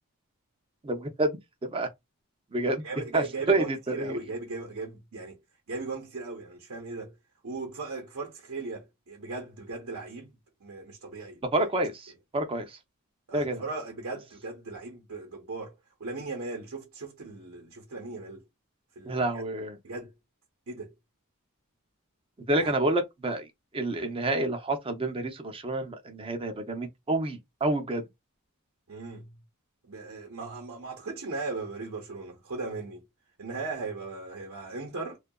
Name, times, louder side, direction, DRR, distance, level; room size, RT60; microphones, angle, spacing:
voice 1, 0.8-1.9 2.5-2.8 3.1-4.2 11.5-12.8 13.3-13.6 19.0-19.8 22.5-23.5 23.7-28.1, right 2 dB, 25° right, 0.5 m, -28 dB
voice 2, 2.8-5.4 5.7-7.1 7.4-10.3 10.6-11.7 13.3-15.7 16.0-18.4 19.0-19.4 19.8-20.1 20.7-20.9 22.6-22.7 28.9-29.4 29.9-33.0 33.4-35.2, right 3 dB, 65° right, 0.8 m, -38 dB
2.7 x 2.3 x 2.2 m
head